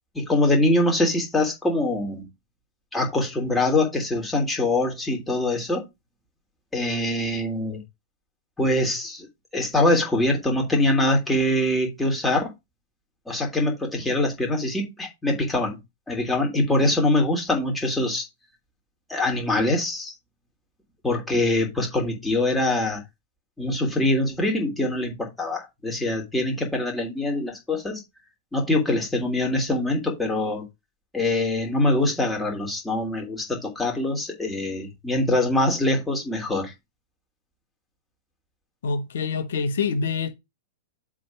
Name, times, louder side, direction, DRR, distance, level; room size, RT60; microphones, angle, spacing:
voice 1, 0.1-2.3 2.9-5.8 6.7-7.8 8.6-9.3 9.5-12.5 13.3-15.8 16.1-18.2 19.1-20.1 21.0-23.0 23.6-28.0 28.5-30.6 31.1-36.7, left 1 dB, 10° left, 3.2 m, -23 dB
voice 2, 38.8-40.3, left 4 dB, 60° left, 1.4 m, -26 dB
7.6 x 3.7 x 5.9 m
figure-of-eight pair, 105°, 0 cm